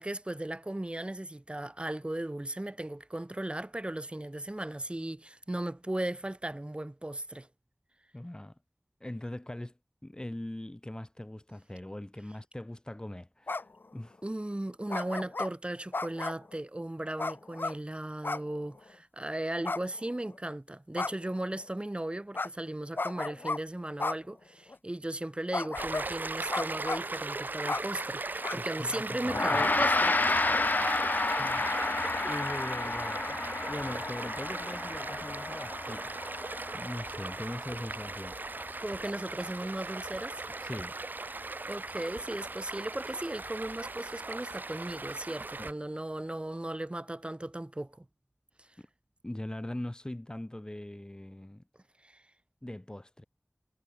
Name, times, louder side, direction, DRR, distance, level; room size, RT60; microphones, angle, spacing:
voice 1, 0.0-7.5 14.2-30.2 32.2-32.4 38.8-40.5 41.7-48.1 52.0-52.2, right 1 dB, 30° right, 3.5 m, -37 dB
voice 2, 8.1-8.5 9.0-9.7 10.0-14.2 28.5-29.7 31.4-31.7 32.3-36.2 36.7-38.4 40.6-40.9 45.6-45.7 48.8-48.9 49.2-51.6 52.6-53.3, left 1 dB, 25° left, 1.5 m, -41 dB
sound 1, 13.5-13.8 14.9-15.5 15.9-16.5 17.2-17.7 18.2-18.5 18.8-18.9 19.6-20.4 20.9-21.3 22.3-22.5 23.0-23.6 24.0-24.2 24.7-24.8 25.5-26.1 26.5-27.1 27.7-27.8 28.4-28.6 28.9-29.0 29.3-29.4 30.0-30.3, left 3 dB, 85° left, 1.4 m, -34 dB
Stream, 25.8-45.7, right 3 dB, 65° right, 0.5 m, -38 dB
Gong, 29.2-38.9, left 3 dB, 60° left, 0.5 m, -31 dB
wide cardioid pair, 45°, 3 cm